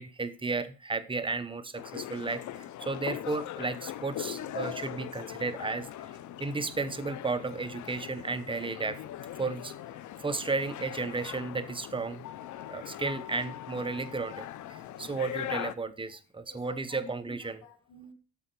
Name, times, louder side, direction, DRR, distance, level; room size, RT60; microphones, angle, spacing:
voice 1, 0.0-5.9 6.4-9.0 9.4-9.7 10.2-12.2 12.7-17.6, right 3 dB, 15° right, 11 dB, 0.9 m, -33 dB
sound 1, 1.8-15.7, left 12 dB, 75° left, 0.7 m, -41 dB
voice 2, 16.5-18.1, left 2 dB, 90° left, 1 dB, 2.1 m, -51 dB
8.4 x 6.4 x 4.5 m, 0.37 s
cardioid pair, 90°, 30 cm